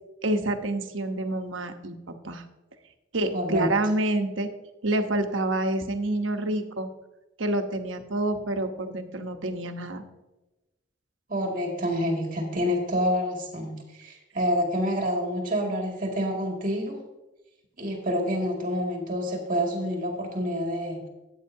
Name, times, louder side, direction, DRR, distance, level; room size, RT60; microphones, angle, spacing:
voice 1, 0.2-2.4 3.1-4.5 4.8-6.9 7.4-10.0, right 1 dB, 90° right, 6 dB, 1.0 m, -28 dB
voice 2, 3.3-3.7 11.3-17.0 17.8-21.1, equal, 45° right, 0 dB, 2.2 m, -28 dB
14.0 x 8.8 x 2.8 m, 1.0 s
head